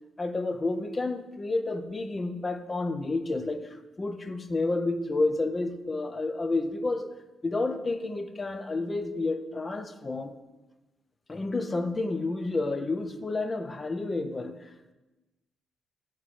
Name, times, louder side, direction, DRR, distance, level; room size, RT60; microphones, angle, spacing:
voice 1, 0.2-7.1 7.4-10.4 11.3-14.6, left 2 dB, 30° left, 0.4 m, -30 dB
7.5 x 2.9 x 4.8 m
cardioid pair, 85°, 0 cm